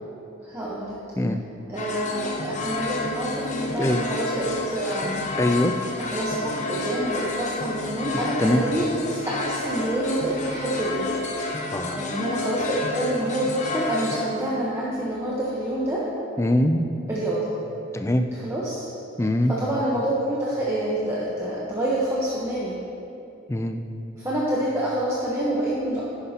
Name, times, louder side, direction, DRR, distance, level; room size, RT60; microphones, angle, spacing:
voice 1, 0.4-1.0 1.7-5.3 6.0-11.1 11.9-16.1 17.1-17.4 18.3-18.9 19.5-22.8 24.2-26.0, right 1 dB, 15° right, -7 dB, 1.0 m, -27 dB
sound 1, 1.8-14.3, left 3 dB, 35° left, 0.7 m, -30 dB
voice 2, 5.4-5.7 8.1-8.6 11.7-12.0 16.4-16.8 17.9-18.3 19.2-19.5 23.5-23.8, left 1 dB, 15° left, 7 dB, 0.3 m, -22 dB
11.0 x 9.8 x 2.9 m, 2.7 s
head